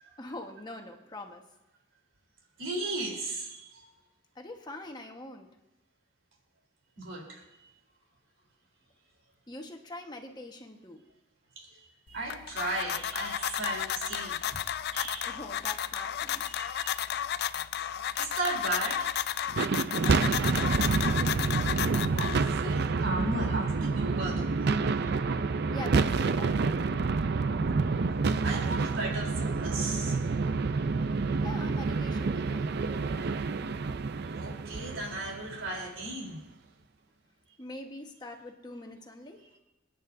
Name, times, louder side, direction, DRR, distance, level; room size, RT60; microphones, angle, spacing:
voice 1, 0.2-1.4 4.3-5.5 9.5-11.0 15.2-16.6 20.0-20.8 25.7-26.7 31.4-33.4 37.6-39.4, left 2 dB, 20° left, 3 dB, 1.3 m, -43 dB
voice 2, 2.6-3.7 7.0-7.4 11.6-14.6 14.9-15.3 16.5-17.0 18.2-19.2 19.9-20.1 22.2-24.6 28.4-30.2 34.4-36.4, right 2 dB, 80° right, -1 dB, 3.7 m, -36 dB
sound 1, 12.1-22.7, left 10 dB, 55° left, 0.4 m, -33 dB
sound 2, 19.5-35.9, right 4 dB, 55° right, 0.5 m, -28 dB
28.0 x 9.4 x 2.7 m, 0.95 s
head